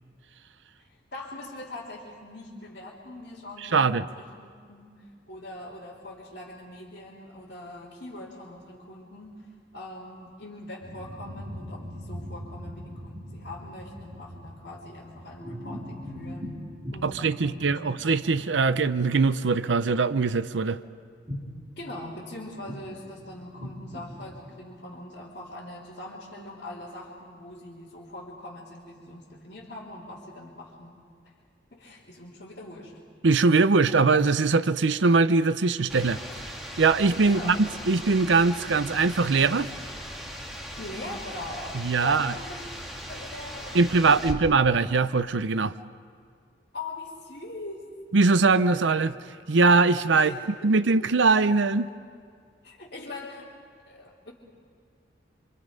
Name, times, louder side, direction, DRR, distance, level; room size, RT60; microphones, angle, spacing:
voice 1, 0.8-9.5 9.7-16.5 16.9-17.8 21.8-31.0 31.7-33.0 37.2-37.7 40.8-42.7 43.1-44.4 46.7-47.9 50.1-51.1 52.6-53.5 53.9-54.3, left 1 dB, 60° left, -8 dB, 3.6 m, -42 dB
voice 2, 3.6-4.1 17.0-20.8 33.2-36.5 36.8-39.7 41.7-42.3 43.7-45.7 48.1-49.1 49.5-50.3 50.6-51.9, right 4 dB, 90° right, 13 dB, 0.7 m, -22 dB
sound 1, 10.8-19.2 19.6-19.7 21.3-21.5 21.8-24.8, equal, 30° right, 3.6 m, -41 dB
sound 2, 35.9-44.3, equal, ahead, 2.2 m, -39 dB
27.0 x 26.5 x 5.3 m, 2.2 s
head